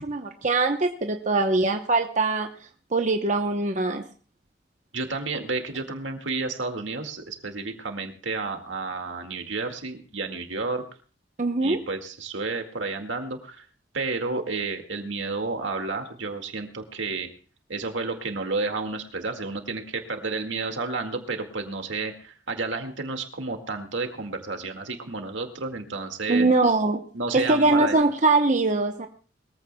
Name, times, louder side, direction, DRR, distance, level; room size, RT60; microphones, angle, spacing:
voice 1, 0.0-2.5 2.9-4.0 11.4-11.8 26.3-27.0 27.3-29.1, right 3 dB, 40° right, 5 dB, 0.9 m, -22 dB
voice 2, 4.9-10.8 11.6-13.6 13.9-17.3 17.7-26.5 27.1-28.0, right 3 dB, 80° right, 5 dB, 2.0 m, -31 dB
22.0 x 14.5 x 2.2 m, 0.40 s
head